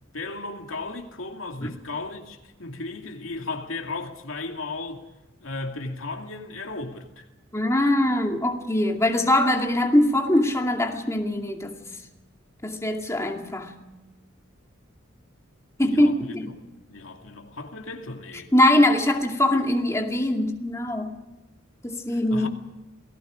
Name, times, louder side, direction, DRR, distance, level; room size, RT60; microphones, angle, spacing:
voice 1, 0.1-5.0 5.4-7.3 15.8-16.4 16.9-18.5 22.3-22.5, left 3 dB, 85° left, 2.5 m, -35 dB
voice 2, 7.5-11.8 12.6-13.7 15.8-16.5 18.5-21.1 21.8-22.5, left 1 dB, 15° left, 2.3 m, -22 dB
28.0 x 19.5 x 5.1 m
head